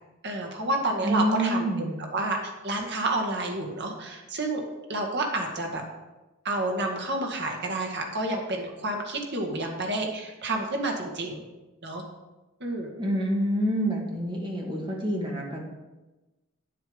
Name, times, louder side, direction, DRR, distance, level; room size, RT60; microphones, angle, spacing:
voice 1, 0.2-4.6 4.9-5.8 6.4-11.5 11.8-12.0 12.6-12.9, right 2 dB, 50° right, 2 dB, 1.8 m, -29 dB
voice 2, 1.0-1.9 13.0-15.6, right 1 dB, 20° right, -1 dB, 2.0 m, -27 dB
9.5 x 7.6 x 5.2 m, 1.1 s
head